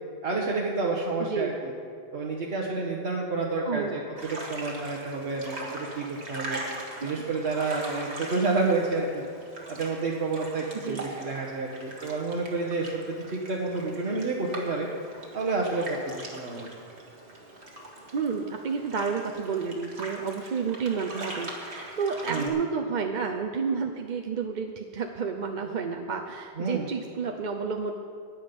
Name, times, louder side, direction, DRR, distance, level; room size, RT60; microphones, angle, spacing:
voice 1, 0.2-1.7 2.1-4.0 4.3-6.6 7.0-9.2 9.7-14.9 15.3-16.7 22.3-22.5 26.6-26.9, right 3 dB, 75° right, -3 dB, 1.4 m, -29 dB
voice 2, 1.2-1.6 3.6-4.0 10.7-11.1 18.1-27.9, right 5 dB, 50° right, 3 dB, 0.7 m, -30 dB
sound 1, 4.2-22.5, right 1 dB, 90° right, 2.1 m, -41 dB
19.5 x 7.3 x 5.3 m, 2.3 s
omnidirectional pair, 1.1 m